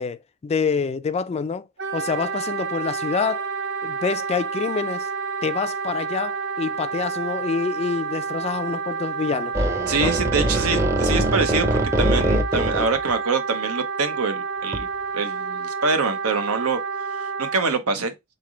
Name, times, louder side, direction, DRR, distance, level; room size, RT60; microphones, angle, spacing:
voice 1, 0.0-1.7 1.9-3.4 3.8-5.1 5.4-9.5 10.0-10.1, left 5 dB, 30° left, 0.3 m, -26 dB
Wind instrument woodwind instrument, 1.8-17.7, right 5 dB, 55° right, 0.7 m, -29 dB
sound 1, 9.5-13.1 14.7-14.8, right 1 dB, 15° right, 0.6 m, -22 dB
voice 2, 9.9-14.9 15.1-16.8 17.2-18.1, right 4 dB, 90° right, 0.8 m, -25 dB
3.7 x 3.3 x 3.7 m
head